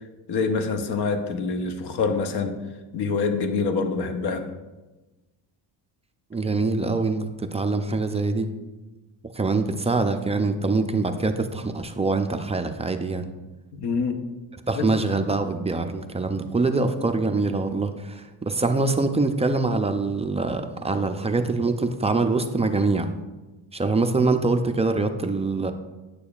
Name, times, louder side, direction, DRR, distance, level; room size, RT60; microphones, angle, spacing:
voice 1, 0.3-2.6 2.9-4.5 13.7-14.2 14.8-14.9 15.2-15.3, left 4 dB, 65° left, 7 dB, 0.9 m, -26 dB
voice 2, 6.3-8.5 9.3-13.3 14.7-23.1 23.7-25.7, right 3 dB, 15° right, 6 dB, 0.4 m, -24 dB
9.7 x 6.7 x 2.4 m, 1.1 s
cardioid pair, 110°, 43 cm